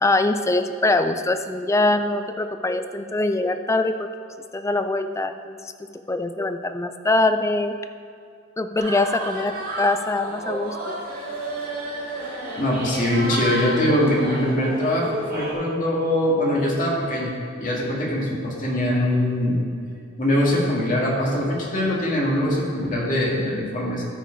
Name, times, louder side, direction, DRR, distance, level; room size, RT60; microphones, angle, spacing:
voice 1, 0.0-4.1 4.5-5.7 6.1-7.7 8.6-11.0, left 2 dB, 15° left, 8 dB, 0.3 m, -23 dB
sound 1, 8.8-15.5, right 1 dB, 45° right, 1.8 m, -31 dB
voice 2, 12.6-19.6 20.2-24.0, left 1 dB, 40° left, -5 dB, 2.0 m, -22 dB
13.5 x 4.7 x 4.6 m, 2.4 s
head